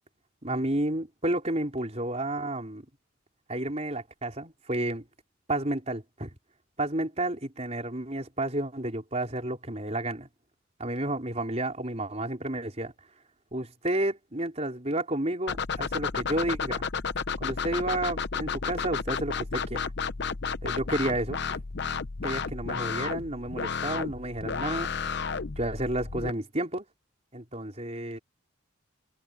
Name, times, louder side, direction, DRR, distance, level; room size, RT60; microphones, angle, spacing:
voice 1, 0.4-2.9 3.5-5.0 5.5-6.4 6.8-10.3 10.8-12.9 13.5-16.9 17.4-19.9 20.6-21.6 22.2-24.9 25.6-26.9 27.3-28.2, right 1 dB, 30° right, 4.2 m, -31 dB
sound 1, 15.5-26.3, left 5 dB, 55° left, 0.8 m, -32 dB
head